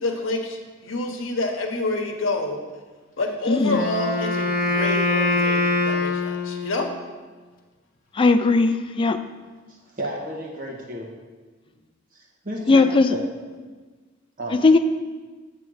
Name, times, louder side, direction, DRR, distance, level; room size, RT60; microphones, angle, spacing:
voice 1, 0.0-2.6 3.2-6.9, left 2 dB, 75° left, 3 dB, 0.9 m, -28 dB
voice 2, 3.5-3.8 8.1-9.2 12.7-13.1 14.6-14.8, left 3 dB, 25° left, 9 dB, 0.3 m, -17 dB
Wind instrument woodwind instrument, 3.6-6.9, left 2 dB, 45° left, 0.7 m, -23 dB
voice 3, 9.7-11.1 12.1-13.2 14.4-14.6, right 1 dB, 45° right, -2 dB, 1.4 m, -32 dB
8.0 x 3.3 x 6.3 m, 1.3 s
head